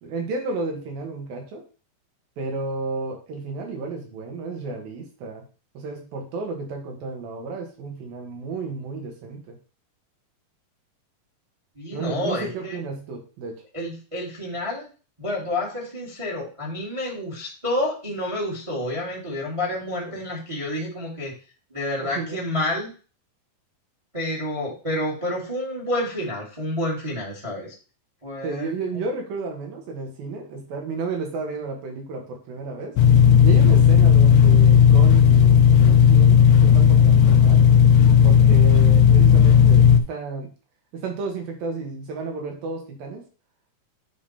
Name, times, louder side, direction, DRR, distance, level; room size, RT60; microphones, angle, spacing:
voice 1, 0.0-1.6 2.4-5.4 5.8-9.6 11.9-13.6 20.1-20.2 22.0-22.4 28.4-33.0 33.4-37.6 38.2-40.5 40.9-43.2, right 3 dB, 80° right, 2 dB, 3.4 m, -32 dB
voice 2, 11.7-12.8 13.7-14.9 15.2-21.3 21.7-22.9 24.1-27.7 28.2-28.7, left 1 dB, 15° right, -2 dB, 1.3 m, -29 dB
sound 1, 33.0-40.0, left 8 dB, 90° left, 1.6 m, -13 dB
9.0 x 3.7 x 4.3 m, 0.36 s
omnidirectional pair, 4.1 m